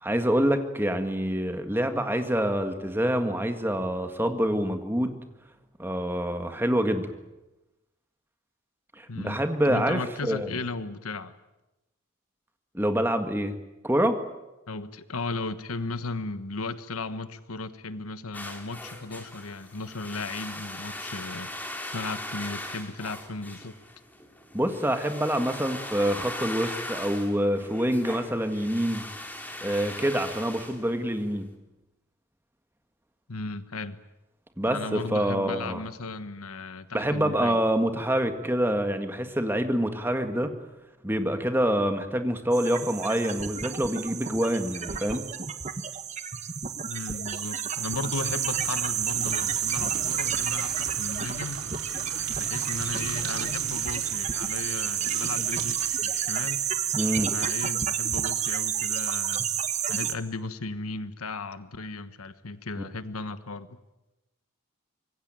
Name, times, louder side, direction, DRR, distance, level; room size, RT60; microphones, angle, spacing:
voice 1, 0.0-5.2 5.8-7.1 9.0-10.5 12.7-13.6 13.8-14.2 24.5-29.0 29.6-31.5 34.6-35.8 36.9-40.5 41.0-45.2 56.9-57.3, equal, 10° right, 7 dB, 1.8 m, -26 dB
voice 2, 9.1-11.3 14.7-21.5 21.8-23.7 33.3-34.0 34.7-37.6 46.9-51.7 52.3-56.6 57.3-59.5 59.9-63.8, left 3 dB, 90° left, 12 dB, 1.4 m, -36 dB
sound 1, 18.3-31.4, left 1 dB, 10° left, 2.9 m, -39 dB
sound 2, 42.5-60.1, right 8 dB, 30° right, 1.3 m, -30 dB
sound 3, 47.7-57.7 58.1-58.3, right 4 dB, 80° right, 4.2 m, -40 dB
25.5 x 22.0 x 9.0 m, 1.0 s
head